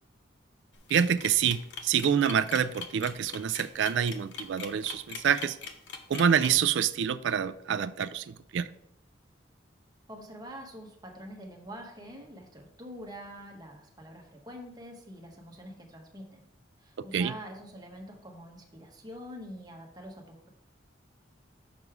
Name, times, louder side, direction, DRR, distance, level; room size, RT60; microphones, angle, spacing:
sound 1, 0.7-6.5, left 6 dB, 65° left, 0.8 m, -41 dB
voice 1, 0.9-5.6 6.1-8.7 17.1-17.3, right 8 dB, 70° right, 13 dB, 0.3 m, -27 dB
voice 2, 10.1-16.5 16.8-20.5, equal, 20° right, 1 dB, 1.1 m, -45 dB
6.0 x 5.3 x 4.8 m, 0.76 s
head